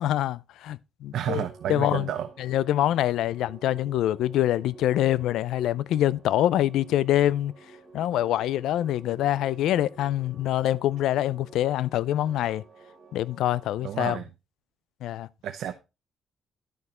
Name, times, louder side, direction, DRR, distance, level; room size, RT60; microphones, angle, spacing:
voice 1, 0.0-2.1 2.4-7.5 7.9-12.6 13.1-14.2 15.0-15.3, left 13 dB, 85° left, 0.4 m, -25 dB
voice 2, 1.1-2.3 13.8-14.3 15.4-15.7, right 10 dB, 70° right, 0.8 m, -31 dB
sound 1, 1.2-14.0, right 4 dB, 10° right, 3.6 m, -51 dB
10.5 x 6.6 x 4.2 m
cardioid pair, 155°, 0 cm